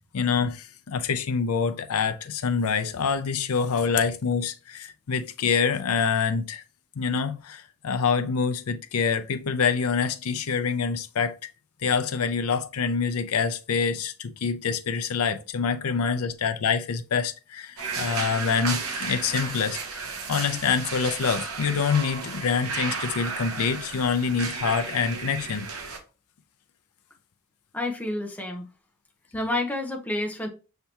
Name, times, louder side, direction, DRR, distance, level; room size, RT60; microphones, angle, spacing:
voice 1, 0.1-6.6 7.0-11.3 11.8-20.0 20.3-25.7, left 6 dB, 75° left, 0.5 m, -26 dB
sound 1, 17.8-26.0, right 4 dB, 75° right, 1.0 m, -33 dB
voice 2, 27.7-28.7 29.3-30.5, left 1 dB, 5° left, 0.8 m, -29 dB
5.6 x 3.3 x 2.8 m
head